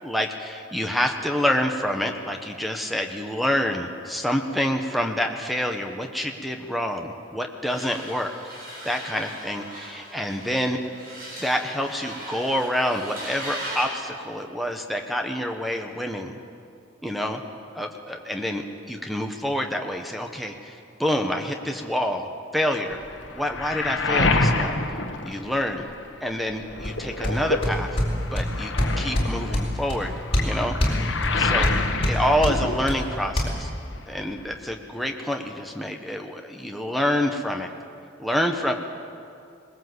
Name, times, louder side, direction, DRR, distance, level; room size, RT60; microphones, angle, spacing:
voice 1, 0.0-8.3 8.8-10.8 11.4-16.3 17.0-17.4 17.7-22.3 22.5-23.0 23.3-24.8 25.2-25.9 26.2-30.1 30.4-31.7 32.0-33.7 34.1-37.7 38.2-38.7, equal, ahead, 4 dB, 1.3 m, -27 dB
sound 1, 7.7-14.0, right 1 dB, 45° right, 7.6 m, -38 dB
Waves surf, 22.9-26.1 26.4-33.4 33.6-34.6, left 3 dB, 70° left, 1.5 m, -28 dB
sound 2, 26.8-33.4, equal, 30° left, 4.3 m, -26 dB
21.5 x 20.0 x 8.1 m, 2.5 s
head